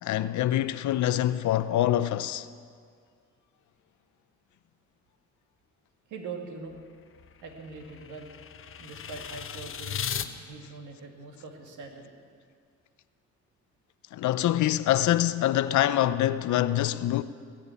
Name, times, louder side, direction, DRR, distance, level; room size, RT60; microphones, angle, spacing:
voice 1, 0.0-2.5 14.1-17.2, left 13 dB, 70° left, 0.6 m, -25 dB
voice 2, 6.1-6.8 7.4-8.3 8.8-12.1, right 4 dB, 80° right, 2.3 m, -42 dB
sound 1, 6.7-10.3, left 8 dB, 45° left, 0.8 m, -37 dB
20.0 x 7.4 x 8.4 m
cardioid pair, 90°, 30 cm